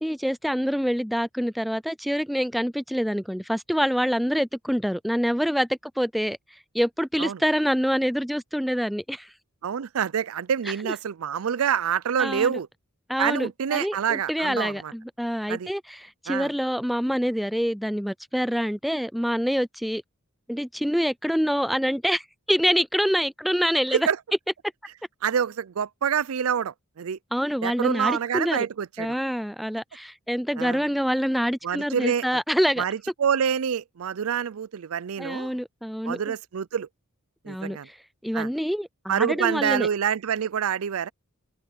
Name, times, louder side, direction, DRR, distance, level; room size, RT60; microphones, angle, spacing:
voice 1, 0.0-6.4 6.7-9.3 12.2-12.6 13.1-20.0 20.5-24.1 27.3-28.7 29.0-32.8 35.2-36.3 37.5-38.0 38.2-39.9, equal, ahead, 0.3 m, -26 dB
voice 2, 9.6-12.7 13.2-14.9 15.5-15.7 16.3-16.5 23.9-24.2 25.2-27.2 27.6-29.2 30.6-30.8 31.6-32.3 32.8-35.5 36.0-36.9 37.4-37.9 38.3-38.5 39.1-41.1, right 8 dB, 75° right, 0.5 m, -26 dB
open air
head